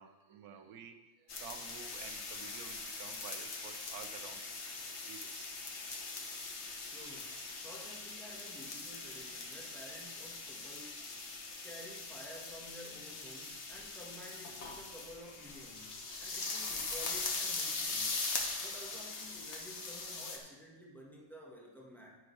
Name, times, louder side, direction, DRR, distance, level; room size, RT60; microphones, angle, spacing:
voice 1, 0.0-5.5 6.9-7.6 11.3-11.6, right 7 dB, 90° right, 8 dB, 1.2 m, -52 dB
sound 1, 1.3-20.4, left 3 dB, 50° left, 1.4 m, -41 dB
voice 2, 6.9-11.1 11.6-18.2 18.6-22.2, equal, ahead, -3 dB, 1.6 m, -52 dB
9.9 x 9.9 x 3.4 m, 1.1 s
omnidirectional pair, 1.5 m